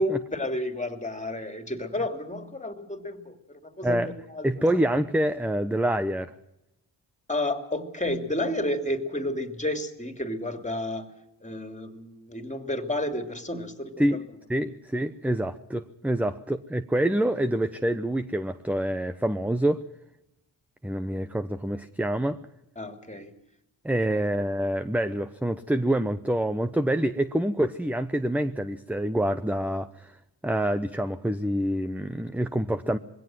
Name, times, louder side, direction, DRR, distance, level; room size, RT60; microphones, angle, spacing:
voice 1, 0.0-4.6 7.3-11.1 11.4-14.3 22.8-23.4 24.1-24.3, left 1 dB, 15° left, 7 dB, 2.9 m, -31 dB
voice 2, 3.8-4.1 4.4-6.3 14.0-14.2 14.5-19.8 20.8-22.4 23.8-30.2 30.4-33.0, right 1 dB, 5° right, 11 dB, 0.9 m, -26 dB
21.0 x 17.0 x 7.7 m, 0.89 s
supercardioid pair, 55°, 47 cm